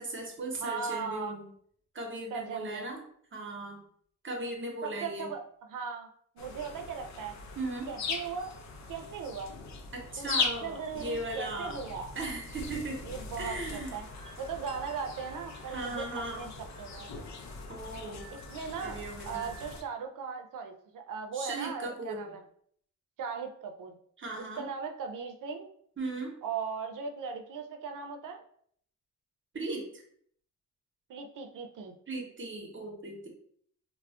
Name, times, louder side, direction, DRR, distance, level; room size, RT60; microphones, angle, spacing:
voice 1, 0.0-1.5 1.9-3.0 3.3-3.8 4.2-5.3 7.6-7.9 9.9-11.8 12.2-13.0 13.4-14.0 15.7-16.5 17.7-18.2 18.8-19.5 21.3-22.2 24.2-24.6 26.0-26.3 29.5-30.0 32.1-33.3, right 2 dB, 40° right, 1 dB, 0.8 m, -37 dB
voice 2, 0.6-1.4 2.3-2.9 4.8-5.4 5.7-6.1 6.4-7.4 7.9-8.5 8.9-9.5 10.2-10.3 10.6-12.1 13.0-14.1 14.4-17.1 18.3-22.4 23.2-24.0 24.4-25.7 26.4-28.4 31.1-32.0, right 6 dB, 85° right, 6 dB, 0.5 m, -38 dB
sound 1, 6.4-19.8, left 4 dB, 65° left, 0.5 m, -40 dB
2.3 x 2.0 x 3.5 m, 0.63 s
wide cardioid pair, 95°, 31 cm